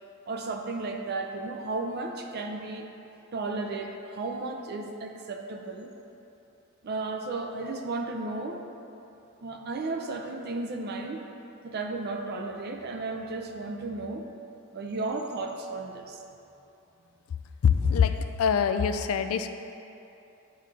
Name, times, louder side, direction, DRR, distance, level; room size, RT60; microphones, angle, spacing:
voice 1, 0.3-2.9 3.3-5.9 6.8-8.6 9.4-11.2 11.6-14.3 14.7-16.2, right 3 dB, 50° right, 3 dB, 0.5 m, -34 dB
voice 2, 17.6-19.5, left 7 dB, 75° left, 9 dB, 0.3 m, -24 dB
10.0 x 3.8 x 3.3 m, 2.9 s
head